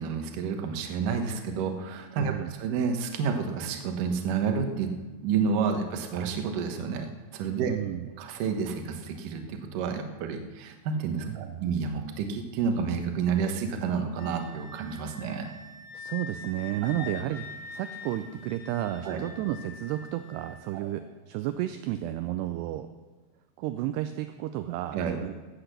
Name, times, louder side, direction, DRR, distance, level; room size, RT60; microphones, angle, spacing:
voice 1, 0.0-2.3 2.6-4.9 5.2-7.7 8.2-15.5 19.0-19.2 20.7-20.9 24.9-25.2, right 6 dB, 65° right, 5 dB, 2.3 m, -30 dB
voice 2, 2.2-2.5 7.6-8.1 11.2-11.7 15.9-22.9 23.6-25.3, right 13 dB, 80° right, 9 dB, 2.5 m, -32 dB
Wind instrument woodwind instrument, 14.2-20.6, left 4 dB, 65° left, 3.6 m, -44 dB
16.5 x 8.0 x 6.7 m, 1.3 s
omnidirectional pair, 5.1 m